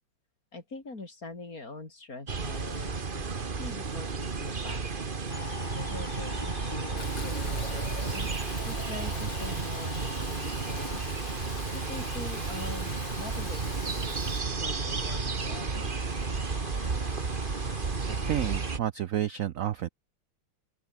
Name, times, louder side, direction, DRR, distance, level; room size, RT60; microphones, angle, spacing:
voice 1, 0.5-3.3 3.5-4.9 5.5-8.3 8.6-11.0 11.7-15.9, left 3 dB, 45° left, 4.8 m, -43 dB
sound 1, 2.3-18.8, right 4 dB, 30° right, 1.4 m, -32 dB
sound 2, 5.3-18.8, left 11 dB, 85° left, 2.0 m, -45 dB
Fill (with liquid), 7.0-14.4, left 2 dB, 60° left, 7.6 m, -44 dB
voice 2, 18.1-19.9, right 11 dB, 75° right, 0.7 m, -30 dB
open air
omnidirectional pair, 2.2 m